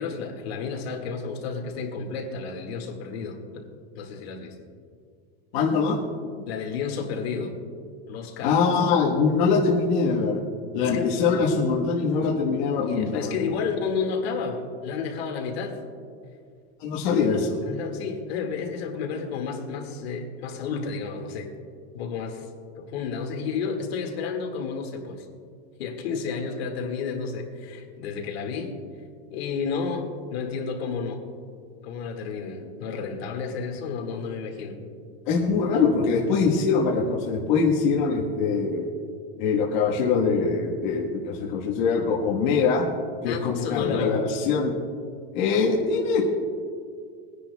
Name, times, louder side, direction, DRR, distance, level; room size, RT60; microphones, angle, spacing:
voice 1, 0.0-3.7 3.9-4.5 6.5-7.5 8.1-8.7 10.8-11.2 12.8-15.8 17.6-21.5 21.9-22.5 22.8-25.2 25.8-28.7 29.3-31.2 31.8-34.8 43.3-44.2, left 5 dB, 80° left, 2 dB, 2.0 m, -31 dB
voice 2, 5.5-6.0 8.4-10.4 10.7-13.3 16.8-17.6 35.3-38.9 39.4-42.9 43.2-44.7 45.3-46.2, left 5 dB, 45° left, -3 dB, 1.3 m, -23 dB
22.5 x 10.0 x 2.3 m, 2.2 s
supercardioid pair, 180°, 31 cm